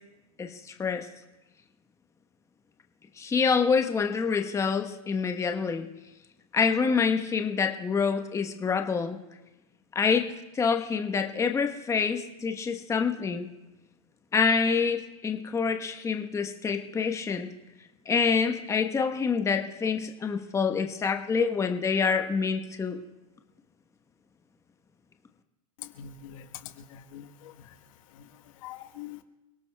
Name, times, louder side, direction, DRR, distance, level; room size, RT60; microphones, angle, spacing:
voice 1, 0.4-1.1 3.2-5.9 6.5-9.2 9.9-13.5 14.3-17.5 18.1-23.0, left 5 dB, 15° left, 5 dB, 1.0 m, -26 dB
voice 2, 26.0-27.3 28.2-28.3 28.6-29.2, left 9 dB, 60° left, 7 dB, 1.2 m, -43 dB
29.5 x 17.5 x 2.2 m, 1.0 s
hypercardioid pair, 105°, 19 cm